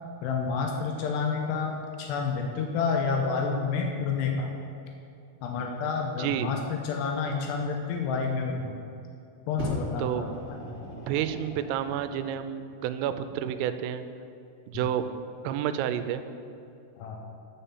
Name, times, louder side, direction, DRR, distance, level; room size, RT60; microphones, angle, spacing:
voice 1, 0.1-4.5 5.4-8.7 9.5-10.6 14.7-14.8 17.0-17.2, left 5 dB, 90° left, 2 dB, 2.4 m, -29 dB
Fire, 9.6-12.4 13.2-13.3, equal, 40° right, 1.0 m, -38 dB
voice 2, 10.9-14.0 14.7-15.0 15.4-16.2, right 10 dB, 90° right, 10 dB, 3.1 m, -30 dB
9.2 x 5.6 x 7.0 m, 2.6 s
omnidirectional pair, 5.7 m